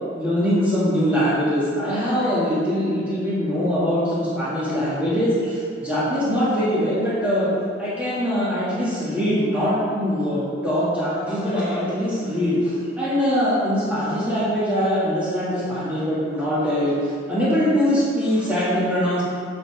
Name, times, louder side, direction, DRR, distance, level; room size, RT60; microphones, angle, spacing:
voice 1, 0.1-7.5 7.8-19.2, equal, 10° right, -11 dB, 1.7 m, -22 dB
8.9 x 5.3 x 3.4 m, 2.2 s
head